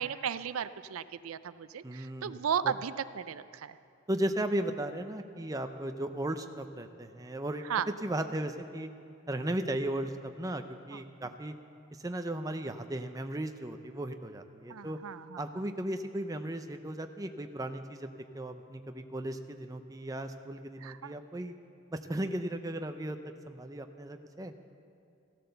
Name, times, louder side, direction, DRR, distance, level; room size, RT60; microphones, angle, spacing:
voice 1, 0.0-3.8 7.6-7.9 10.9-11.0 14.7-15.4 20.8-21.1, right 8 dB, 85° right, 14 dB, 0.4 m, -35 dB
voice 2, 1.8-2.4 4.1-7.7 8.0-8.9 9.3-11.5 12.0-15.0 15.4-18.1 18.3-21.5 21.9-23.2 23.5-24.5, right 1 dB, 15° right, 7 dB, 0.5 m, -36 dB
15.5 x 12.0 x 6.8 m, 2.6 s
head